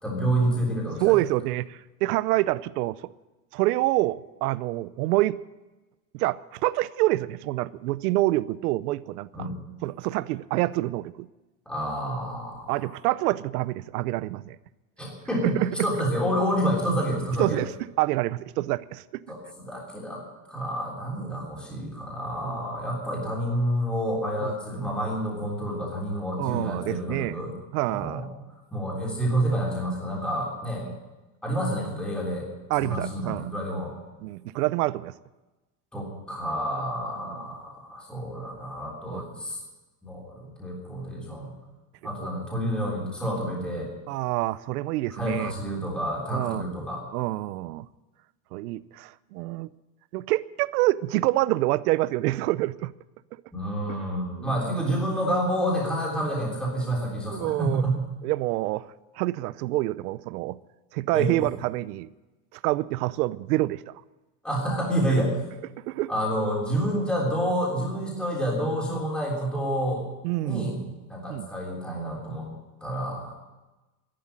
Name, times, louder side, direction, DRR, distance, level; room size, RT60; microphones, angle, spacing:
voice 1, 0.0-1.2 9.3-9.6 11.6-12.9 15.0-17.6 19.3-20.2 20.5-27.5 27.9-28.3 28.7-30.8 31.4-32.5 32.8-33.9 35.9-39.6 40.0-41.5 42.0-43.9 45.1-47.1 53.5-58.0 61.1-61.3 64.4-65.4 66.1-70.0 70.4-70.8 71.1-72.5 72.8-73.3, equal, ahead, -4 dB, 3.4 m, -28 dB
voice 2, 1.0-3.1 3.5-5.4 6.1-9.5 9.8-11.3 12.7-14.6 15.4-15.9 17.4-17.7 18.0-19.0 22.5-22.7 24.4-24.5 26.4-27.4 27.7-28.2 30.9-31.0 32.7-33.5 34.2-35.1 37.2-37.5 39.1-39.2 44.1-45.5 46.3-46.6 47.1-47.9 48.5-49.7 50.1-52.9 54.0-54.1 54.4-54.5 57.3-57.8 58.2-58.8 59.2-60.6 60.9-62.1 62.6-63.8 65.9-66.1 68.9-69.0 70.2-70.7 71.3-71.5, right 18 dB, 70° right, 18 dB, 0.7 m, -27 dB
13.5 x 11.5 x 8.9 m, 1.1 s
supercardioid pair, 180°, 48 cm